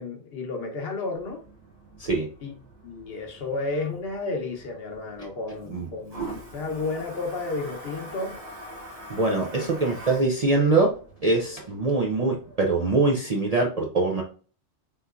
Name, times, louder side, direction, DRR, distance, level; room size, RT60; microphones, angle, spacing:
voice 1, 0.0-1.4 2.4-2.5 2.8-8.4 9.6-10.3 10.6-10.7, left 3 dB, 60° left, 0.9 m, -32 dB
Toilet flush, 1.1-12.7, right 1 dB, 75° right, 1.9 m, -44 dB
voice 2, 9.1-10.9 11.2-14.2, right 3 dB, 50° right, 0.4 m, -23 dB
3.6 x 2.8 x 2.3 m
omnidirectional pair, 1.2 m